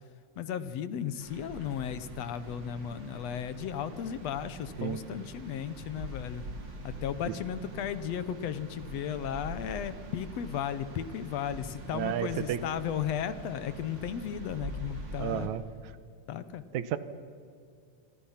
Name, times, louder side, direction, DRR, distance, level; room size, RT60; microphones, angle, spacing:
voice 1, 0.4-6.4 6.8-15.5 16.3-16.6, left 9 dB, 70° left, 13 dB, 2.0 m, -35 dB
sound 1, 1.2-15.5, right 1 dB, 40° right, 3.3 m, -44 dB
voice 2, 11.9-12.6 15.2-15.6 16.7-17.0, right 11 dB, 90° right, 14 dB, 2.4 m, -31 dB
27.5 x 25.0 x 5.8 m, 2.4 s
omnidirectional pair, 3.3 m